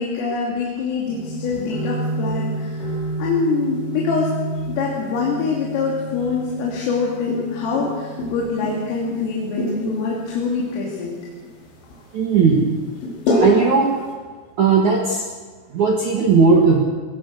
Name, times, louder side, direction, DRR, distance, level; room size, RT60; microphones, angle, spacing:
voice 1, 0.0-2.8 3.2-4.3 4.7-11.2, left 4 dB, 85° left, -4 dB, 5.5 m, -24 dB
sound 1, 1.0-14.1, equal, 70° left, 7.0 m, -28 dB
voice 2, 12.1-12.7 13.4-13.9 14.6-15.2 15.7-16.8, right 5 dB, 55° right, 0 dB, 2.3 m, -16 dB
22.5 x 19.0 x 6.5 m, 1.4 s
omnidirectional pair, 5.7 m